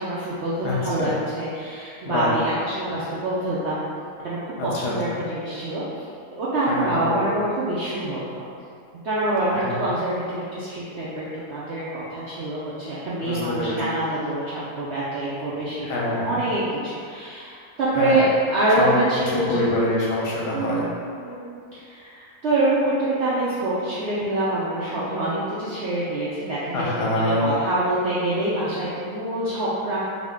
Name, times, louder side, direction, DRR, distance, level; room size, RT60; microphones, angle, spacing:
voice 1, 0.0-3.9 4.2-5.8 6.3-8.5 9.0-11.2 11.5-15.9 16.2-19.7 20.5-20.9 21.2-21.5 21.7-30.0, right 1 dB, 75° right, -9 dB, 0.6 m, -25 dB
voice 2, 0.6-1.2 2.0-2.3 4.6-5.2 6.7-7.3 9.5-9.9 13.2-14.1 15.8-16.4 17.9-18.2 18.8-19.0 19.3-20.9 26.7-27.5, left 1 dB, 90° left, -5 dB, 1.3 m, -26 dB
3.6 x 2.2 x 3.5 m, 2.4 s
omnidirectional pair, 1.8 m